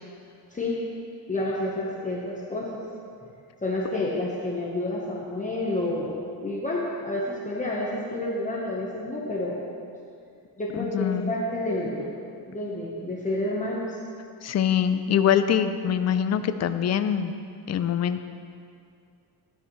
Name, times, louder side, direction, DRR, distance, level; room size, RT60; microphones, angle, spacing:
voice 1, 1.3-2.8 3.6-9.6 10.6-12.1 12.5-14.0, left 1 dB, 15° left, -5 dB, 1.1 m, -29 dB
voice 2, 10.8-11.3 14.4-17.3 17.7-18.2, left 8 dB, 40° left, 10 dB, 0.5 m, -24 dB
13.0 x 10.0 x 3.2 m, 2.4 s
cardioid pair, 145°, 44 cm